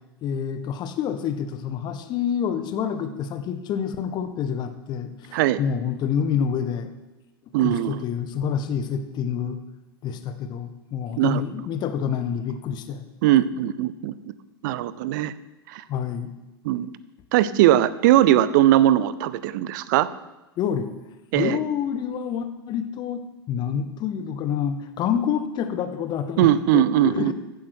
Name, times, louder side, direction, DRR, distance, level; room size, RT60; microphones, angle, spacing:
voice 1, 0.2-6.9 7.6-9.6 10.0-13.0 15.9-16.3 20.6-20.9 21.3-23.2 23.5-27.3, left 8 dB, 35° left, 8 dB, 1.4 m, -27 dB
voice 2, 7.5-8.0 11.2-11.4 13.2-14.3 14.6-15.3 15.7-15.8 16.6-16.9 17.3-20.1 21.3-21.6 26.4-27.3, right 13 dB, 50° right, 16 dB, 0.8 m, -20 dB
15.0 x 11.5 x 4.5 m, 1.0 s
figure-of-eight pair, 90°, 13 cm